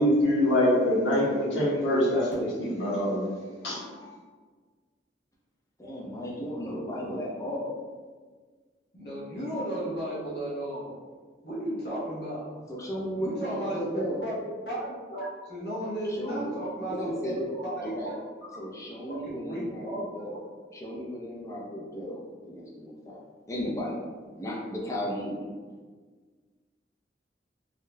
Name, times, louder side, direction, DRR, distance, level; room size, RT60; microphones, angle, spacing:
voice 1, 0.0-3.3 3.6-4.0, left 1 dB, 80° left, -9 dB, 1.3 m, -24 dB
voice 2, 5.8-7.7 12.7-14.2 16.0-16.6 16.8-17.5 17.8-18.1 18.6-20.4 20.7-23.2 23.5-24.1 24.4-25.4, equal, 15° left, -3 dB, 0.5 m, -35 dB
voice 3, 8.9-11.0 11.4-12.5 13.2-14.3 14.6-18.1 18.5-18.6 19.1-20.3, right 1 dB, 60° left, -8 dB, 1.1 m, -34 dB
3.7 x 2.6 x 2.2 m, 1.5 s
head